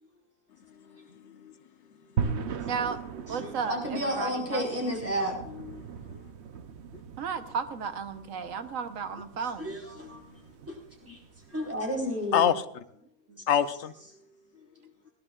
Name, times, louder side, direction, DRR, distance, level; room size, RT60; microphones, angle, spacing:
voice 1, 1.1-1.5 2.2-2.5 5.5-5.9 10.0-10.3 12.3-12.6 13.5-13.9, left 9 dB, 60° left, 11 dB, 1.1 m, -28 dB
sound 1, 2.2-12.4, right 6 dB, 60° right, 1.1 m, -39 dB
voice 2, 2.7-3.0 3.3-5.4 7.2-9.8 13.3-13.4, right 6 dB, 75° right, 9 dB, 1.5 m, -34 dB
voice 3, 3.4-5.3 9.6-10.2 10.7-11.2 11.5-12.5, equal, 10° right, -3 dB, 4.8 m, -32 dB
21.0 x 17.0 x 2.5 m, 0.72 s
omnidirectional pair, 1.4 m